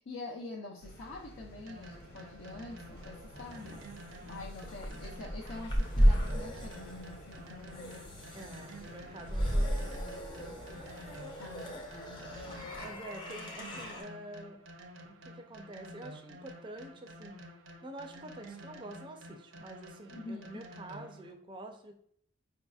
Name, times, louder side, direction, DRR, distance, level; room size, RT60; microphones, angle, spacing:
voice 1, 0.1-3.8 4.2-8.1 11.4-12.7 20.1-20.7, left 3 dB, 80° left, -2 dB, 0.6 m, -46 dB
sound 1, 0.8-12.9, equal, 50° left, 0.9 m, -51 dB
sound 2, 1.7-21.3, right 1 dB, 70° right, 0.6 m, -50 dB
sound 3, 3.0-14.0, equal, 25° left, 0.5 m, -34 dB
voice 2, 8.3-10.9 11.5-11.8 12.8-14.6 15.0-17.4 17.8-21.9, right 1 dB, 25° right, 5 dB, 0.4 m, -47 dB
4.7 x 2.7 x 2.3 m, 0.64 s
head